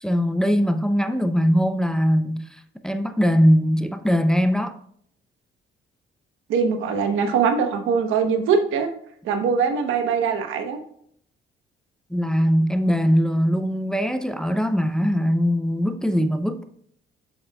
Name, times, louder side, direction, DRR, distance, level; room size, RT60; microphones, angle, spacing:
voice 1, 0.0-4.8 12.1-16.7, equal, 5° left, 0.5 m, -21 dB
voice 2, 6.5-8.9 9.2-10.8, right 6 dB, 90° right, 1.0 m, -22 dB
7.6 x 7.0 x 2.3 m
cardioid pair, 90°, 20 cm